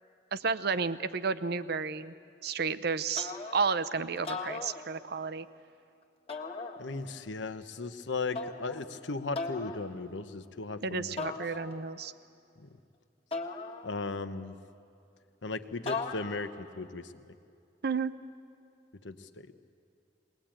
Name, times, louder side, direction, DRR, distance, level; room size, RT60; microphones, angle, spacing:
voice 1, 0.3-2.1 2.4-5.5 10.8-12.1 17.8-18.1, right 5 dB, 60° right, 14 dB, 0.7 m, -32 dB
sound 1, 3.1-3.8 4.2-5.3 6.3-7.2 8.3-8.9 9.3-9.9 11.2-12.0 13.3-14.3 15.9-16.6, left 4 dB, 35° left, 1.5 m, -39 dB
voice 2, 6.8-11.4 13.8-14.5 15.4-17.1 19.0-19.5, left 3 dB, 80° left, 10 dB, 1.0 m, -37 dB
21.5 x 19.5 x 8.9 m, 2.5 s
head